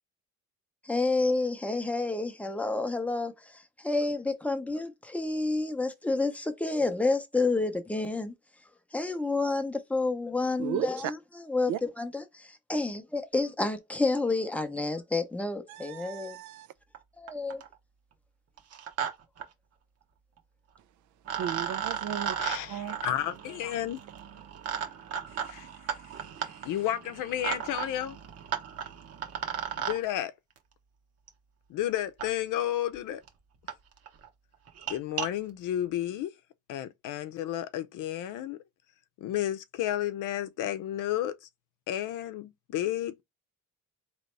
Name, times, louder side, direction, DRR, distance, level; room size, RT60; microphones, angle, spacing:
voice 1, 0.8-3.3 3.8-8.3 8.9-16.4 17.2-17.6, left 3 dB, 5° left, 0.6 m, -29 dB
voice 2, 10.6-11.1 11.7-11.8 15.7-16.7 21.3-22.4 22.7-23.0, right 10 dB, 70° right, 0.5 m, -34 dB
sound 1, 16.9-17.0 17.3-17.7 18.6-19.1 19.4-19.5 20.7-20.8 21.2-30.0 31.3-31.4 32.2-32.3 32.9-33.0 33.3-33.4 33.7-33.8 34.1-34.3 34.7-35.3, right 8 dB, 55° right, 1.0 m, -35 dB
voice 3, 22.4-24.0 25.4-25.7 26.6-28.2 29.8-30.3 31.7-33.2 34.9-36.3 36.7-38.6 39.2-41.5 41.9-43.2, left 12 dB, 85° left, 0.6 m, -32 dB
4.0 x 3.1 x 3.2 m
cardioid pair, 135°, 30 cm